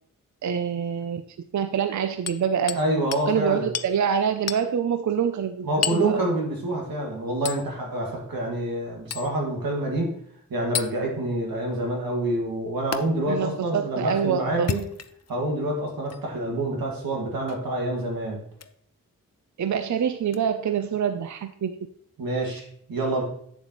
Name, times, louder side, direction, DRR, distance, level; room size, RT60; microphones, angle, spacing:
voice 1, 0.4-1.2 1.5-2.8 3.3-6.2 13.3-14.7 19.6-21.8, right 8 dB, 55° right, 10 dB, 0.6 m, -26 dB
Hammer, 2.3-2.9 3.1-3.3 3.7-3.9 4.5-4.7 5.8-6.1 7.5-7.6 9.1-9.3 10.7-10.9 12.9-13.0 14.5-15.3 16.1-16.2 17.5-17.7 18.5-18.7 20.3-20.4, left 8 dB, 50° left, 0.6 m, -31 dB
voice 2, 2.7-3.7 5.6-10.1 10.5-14.8 15.3-18.4 22.2-23.2, right 1 dB, 90° right, -1 dB, 2.0 m, -27 dB
8.3 x 7.1 x 3.0 m, 0.64 s
cardioid pair, 45°, 34 cm